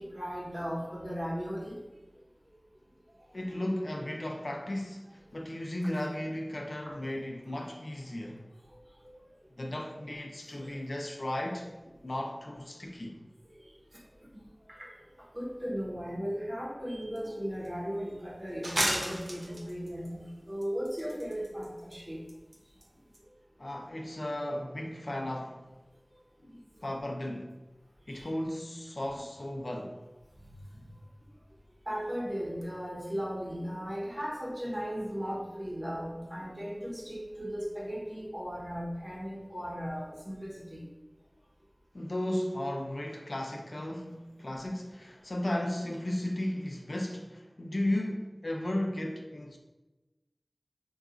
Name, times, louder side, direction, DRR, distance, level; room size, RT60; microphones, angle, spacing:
voice 1, 0.0-1.8 3.2-3.3 6.8-6.9 8.2-8.3 9.0-9.1 10.5-10.8 13.4-13.6 14.3-14.4 14.7-14.9 15.2-22.2 26.4-26.6 28.1-28.3 29.0-29.2 30.7-30.8 31.9-40.8 44.5-44.7, equal, 50° right, 0.9 m, -37 dB
voice 2, 3.3-8.4 9.6-11.7 12.0-13.2 23.6-25.7 26.8-27.5 28.1-30.0 41.9-49.6, left 1 dB, 80° left, 0.4 m, -35 dB
sound 1, 17.2-17.3 17.6-17.7 18.6-20.1 20.6-21.7 21.9-22.0 22.3-22.6 22.8-22.9 23.1-23.2, right 1 dB, 70° right, 0.5 m, -32 dB
3.8 x 2.3 x 2.4 m
wide cardioid pair, 45°, 0 cm